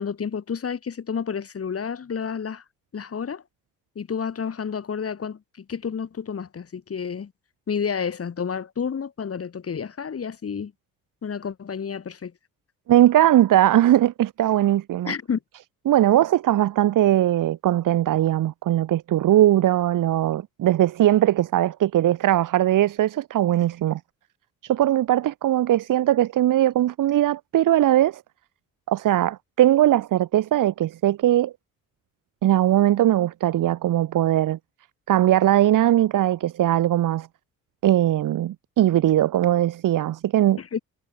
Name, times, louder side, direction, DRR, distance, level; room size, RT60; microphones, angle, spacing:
voice 1, 0.0-2.6 2.9-3.4 4.0-7.3 7.7-10.7 11.2-12.3 15.0-15.4 40.6-40.8, left 6 dB, 45° left, 4.0 m, -30 dB
voice 2, 12.9-15.1 15.9-24.0 24.6-28.2 28.9-31.5 32.4-34.6 35.1-37.3 37.8-40.6, right 13 dB, 70° right, 1.4 m, -20 dB
cardioid pair, 85°, 33 cm